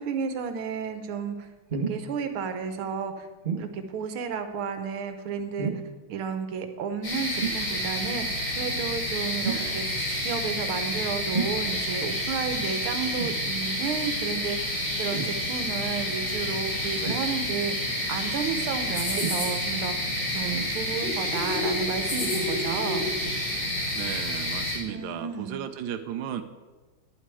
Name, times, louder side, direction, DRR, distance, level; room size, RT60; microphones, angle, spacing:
voice 1, 0.0-1.5 1.9-3.3 3.6-5.7 6.1-9.9 10.2-20.1 20.3-23.1 24.9-25.6, right 6 dB, 85° right, 8 dB, 1.9 m, -32 dB
sound 1, 1.7-2.0 3.4-3.7 5.6-6.0 7.4-7.7 9.4-9.7 11.3-11.6 13.2-13.4 15.1-15.4 17.0-17.6 19.2-19.4 20.2-20.3, right 5 dB, 30° right, 1.3 m, -30 dB
sound 2, 7.0-24.8, left 1 dB, 65° left, 3.9 m, -29 dB
voice 2, 9.5-9.9 24.0-26.4, right 9 dB, 70° right, 7 dB, 1.3 m, -35 dB
11.5 x 10.5 x 4.8 m, 1.3 s
omnidirectional pair, 2.3 m